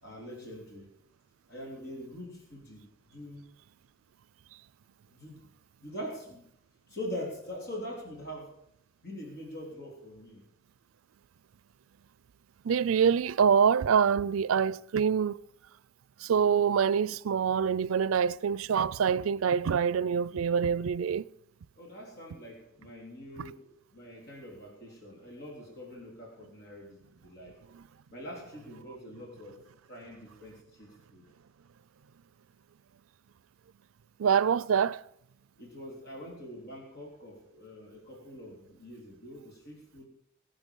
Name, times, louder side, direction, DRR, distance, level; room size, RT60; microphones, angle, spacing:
voice 1, 0.0-0.9 1.5-3.4 5.1-5.5 5.8-6.4 6.9-8.5 9.0-10.4 21.8-27.5 28.1-29.6 29.9-31.2 35.6-40.1, equal, 50° left, 3.7 m, -43 dB
voice 2, 12.6-15.4 16.2-21.3 23.4-23.5 27.7-27.8 34.2-35.0, right 7 dB, 90° right, 0.4 m, -25 dB
21.0 x 7.8 x 5.5 m
head